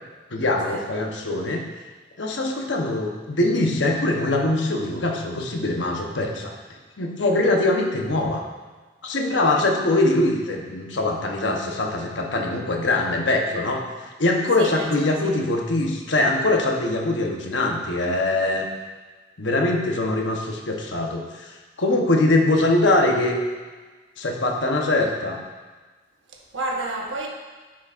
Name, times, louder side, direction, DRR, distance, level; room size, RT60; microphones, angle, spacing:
voice 1, 0.3-1.7 2.2-6.5 7.0-8.4 9.0-13.8 14.2-18.7 19.4-23.4 24.2-25.4, left 2 dB, 75° left, 2 dB, 0.9 m, -22 dB
voice 2, 14.6-15.3 26.3-27.3, right 2 dB, 85° right, 0 dB, 1.1 m, -31 dB
9.9 x 6.2 x 2.5 m, 1.3 s
head